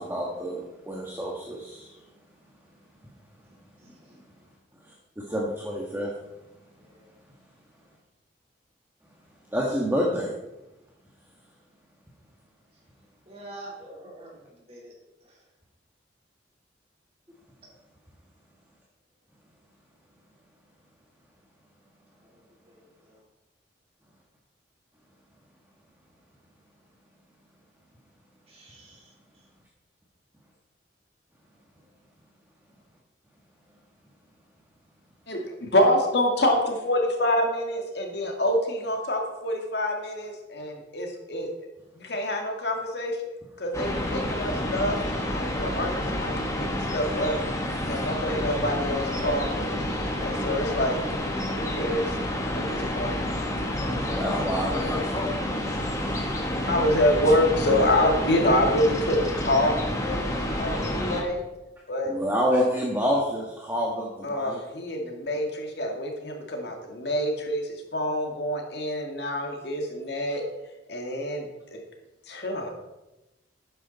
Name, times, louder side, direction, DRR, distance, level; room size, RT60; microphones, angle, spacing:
voice 1, 0.0-2.1 2.7-2.8 3.0-3.7 4.1-4.4 4.7-6.3 6.8-6.9 7.3-7.4 9.5-10.3 47.8-48.0 54.1-55.2 57.6-57.9 62.0-64.6 70.3-70.4, equal, 10° right, -3 dB, 1.4 m, -29 dB
voice 2, 3.8-4.2 6.8-7.2 12.7-12.8 13.3-14.9 15.2-15.4 22.2-23.2 28.5-29.5 31.8-32.0, right 1 dB, 30° right, -4 dB, 3.5 m, -48 dB
voice 3, 35.3-41.5 42.0-43.2 43.6-47.3 47.8-51.0 51.5-52.1 52.5-53.2 56.7-61.4 61.9-62.1 64.2-70.4 70.9-71.8 72.3-72.7, left 1 dB, 60° left, 2 dB, 2.0 m, -26 dB
sound 1, 43.7-61.2, left 1 dB, 15° left, 1.5 m, -29 dB
12.5 x 9.1 x 4.1 m, 1.0 s
head